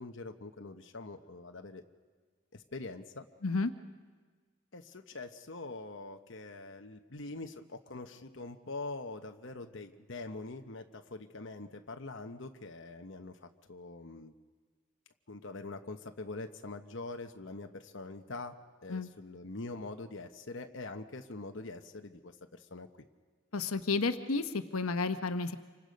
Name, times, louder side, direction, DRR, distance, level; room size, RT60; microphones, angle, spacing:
voice 1, 0.0-1.8 2.5-3.3 4.7-14.3 15.3-18.6 18.8-22.9, left 3 dB, 55° left, 5 dB, 1.0 m, -44 dB
voice 2, 23.5-25.6, left 3 dB, 85° left, 9 dB, 1.0 m, -31 dB
28.0 x 25.0 x 5.2 m, 1.5 s
head